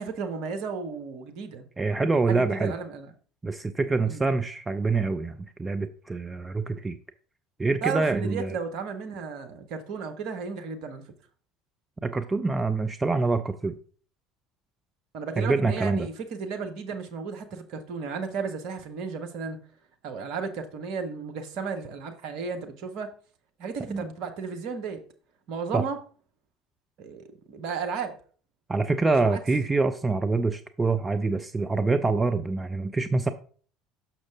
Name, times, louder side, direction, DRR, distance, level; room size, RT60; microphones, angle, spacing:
voice 1, 0.0-1.7 2.3-3.1 4.1-4.3 7.8-11.0 15.1-19.6 20.0-23.1 23.6-25.0 25.5-26.0 27.0-28.2 29.2-29.4, right 5 dB, 55° right, 1.0 m, -34 dB
voice 2, 1.8-2.7 3.4-7.0 7.6-8.5 12.0-13.7 15.4-16.1 23.9-24.0 25.7-25.8 28.7-33.3, right 3 dB, 20° right, 0.5 m, -25 dB
6.4 x 5.9 x 3.6 m
figure-of-eight pair, 65°, 0 cm